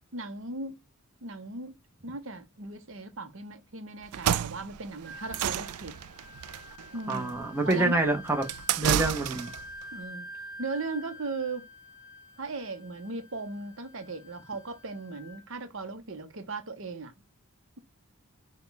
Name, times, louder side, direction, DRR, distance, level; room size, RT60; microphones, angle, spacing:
voice 1, 0.1-0.8 1.2-1.7 2.0-6.0 6.9-8.0 9.9-10.3 10.6-11.7 12.4-17.1, right 3 dB, 60° right, 0.8 m, -37 dB
sound 1, 4.0-9.7, right 10 dB, 90° right, 0.4 m, -31 dB
Wind instrument woodwind instrument, 5.0-15.4, left 1 dB, 10° left, 1.9 m, -48 dB
voice 2, 7.1-8.4 8.8-9.5, right 2 dB, 10° right, 0.9 m, -27 dB
5.9 x 2.3 x 3.9 m
head